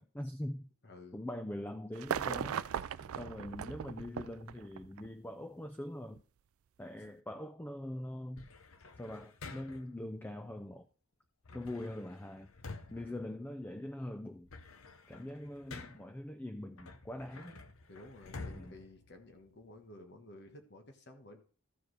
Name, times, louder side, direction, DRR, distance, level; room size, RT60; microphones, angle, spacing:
voice 1, 0.0-0.7 1.1-2.6 3.2-6.2 6.8-8.5 9.0-10.9 11.5-12.5 12.9-14.5 15.1-17.6 18.5-18.7, left 1 dB, 10° left, 0.4 m, -43 dB
voice 2, 0.8-1.2 3.0-3.4 12.9-13.2 17.3-17.6 17.8-21.4, left 1 dB, 50° left, 1.4 m, -54 dB
sound 1, 2.0-5.1 6.2-6.3, right 8 dB, 75° right, 0.4 m, -38 dB
sound 2, 8.4-10.0 11.4-13.9 14.3-16.2 16.8-19.8, left 3 dB, 70° left, 0.8 m, -50 dB
13.5 x 4.7 x 4.8 m
head